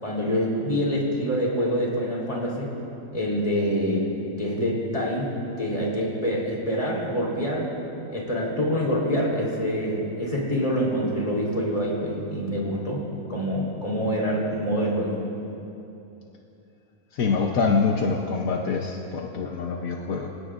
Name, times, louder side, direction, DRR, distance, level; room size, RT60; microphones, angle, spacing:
voice 1, 0.0-2.7 3.1-4.0 4.4-5.3 5.6-7.7 8.1-13.0 13.3-15.2, equal, 25° left, -4 dB, 3.8 m, -26 dB
voice 2, 17.1-20.3, left 4 dB, 75° left, 1 dB, 1.3 m, -25 dB
27.0 x 17.5 x 2.5 m, 2.9 s
omnidirectional pair, 1.5 m